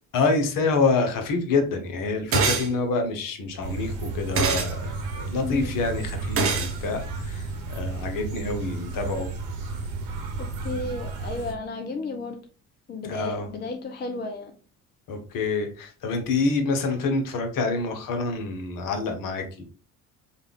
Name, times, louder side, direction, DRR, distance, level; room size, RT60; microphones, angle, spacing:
voice 1, 0.1-9.3 13.0-13.5 15.1-19.6, left 3 dB, 45° left, 5 dB, 1.1 m, -27 dB
sound 1, 2.3-2.7 4.4-4.7 6.4-6.7, right 4 dB, 30° right, 0.9 m, -23 dB
sound 2, 3.6-11.5, right 3 dB, 60° right, 1.1 m, -33 dB
voice 2, 5.4-5.7 10.4-12.4 12.9-14.5, left 3 dB, 20° left, 4 dB, 0.6 m, -33 dB
5.2 x 2.4 x 3.4 m, 0.38 s
figure-of-eight pair, 50°, 45 cm